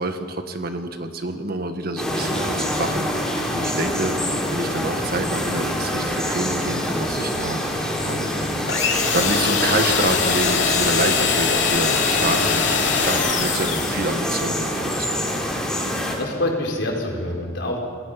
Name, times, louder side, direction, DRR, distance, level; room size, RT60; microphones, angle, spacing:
voice 1, 0.0-15.3, right 2 dB, 55° right, 6 dB, 1.7 m, -28 dB
sound 1, 2.0-16.1, equal, 5° left, 4.0 m, -26 dB
sound 2, 8.7-14.3, left 6 dB, 85° left, 3.0 m, -22 dB
voice 2, 16.2-17.8, left 1 dB, 70° left, 0 dB, 4.8 m, -25 dB
28.0 x 19.0 x 5.9 m, 2.1 s
head